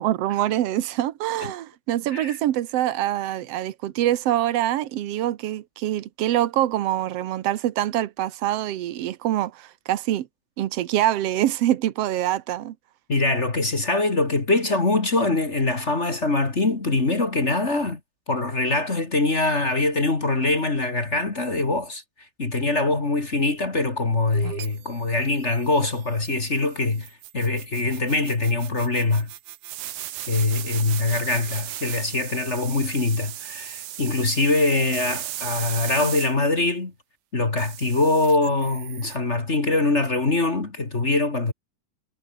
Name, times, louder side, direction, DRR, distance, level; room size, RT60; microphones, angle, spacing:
voice 1, 0.0-10.3 10.6-12.7, right 13 dB, 90° right, 1.4 m, -25 dB
voice 2, 13.1-18.0 18.3-22.0 22.4-29.3 30.3-36.9 37.3-41.5, left 2 dB, 25° left, 1.8 m, -23 dB
sound 1, 24.3-36.3 37.6-39.2, right 13 dB, 65° right, 2.5 m, -37 dB
omnidirectional pair, 4.3 m